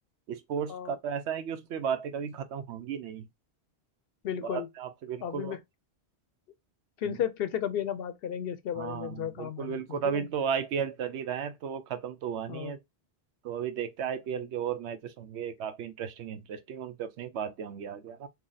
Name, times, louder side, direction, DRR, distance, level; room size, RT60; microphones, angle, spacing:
voice 1, 0.3-3.2 4.4-5.6 7.1-7.2 8.8-12.8 13.4-18.3, right 7 dB, 85° right, 0.9 m, -34 dB
voice 2, 4.2-4.7 5.2-5.6 7.0-10.3 12.5-12.7, left 9 dB, 65° left, 0.7 m, -34 dB
2.8 x 2.7 x 3.9 m
omnidirectional pair, 1.1 m